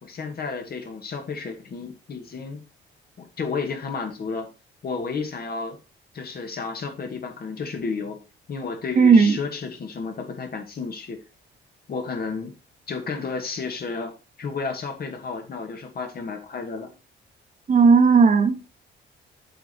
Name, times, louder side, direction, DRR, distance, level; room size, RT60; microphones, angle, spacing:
voice 1, 0.0-2.6 3.2-4.5 4.8-5.8 6.1-8.2 8.5-11.2 11.9-12.5 12.9-14.1 14.4-16.9, left 4 dB, 50° left, 2.2 m, -32 dB
voice 2, 9.0-9.3 17.7-18.6, right 5 dB, 40° right, 1.5 m, -15 dB
7.7 x 5.3 x 4.5 m
cardioid pair, 90°, 20 cm